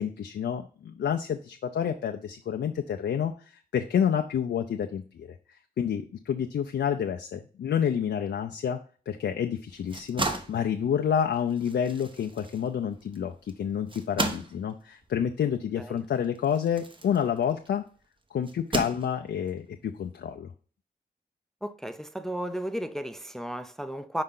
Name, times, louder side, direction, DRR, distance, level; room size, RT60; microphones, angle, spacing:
voice 1, 0.0-8.8 9.1-17.8 18.3-20.5, left 8 dB, 85° left, 0.5 m, -29 dB
sound 1, 9.7-17.8 18.4-19.5, right 2 dB, 30° right, 0.9 m, -36 dB
voice 2, 21.6-24.2, right 1 dB, ahead, 0.5 m, -34 dB
5.4 x 4.8 x 3.8 m
cardioid pair, 70°, 18 cm